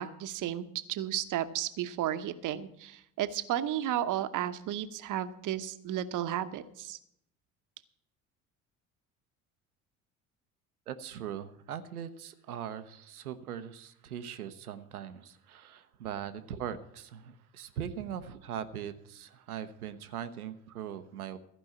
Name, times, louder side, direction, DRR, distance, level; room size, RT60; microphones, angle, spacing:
voice 1, 0.0-7.0, right 11 dB, 45° right, 11 dB, 0.9 m, -33 dB
voice 2, 10.9-21.4, right 9 dB, 85° right, 11 dB, 0.8 m, -40 dB
15.0 x 5.4 x 8.7 m, 0.75 s
figure-of-eight pair, 60°, 43 cm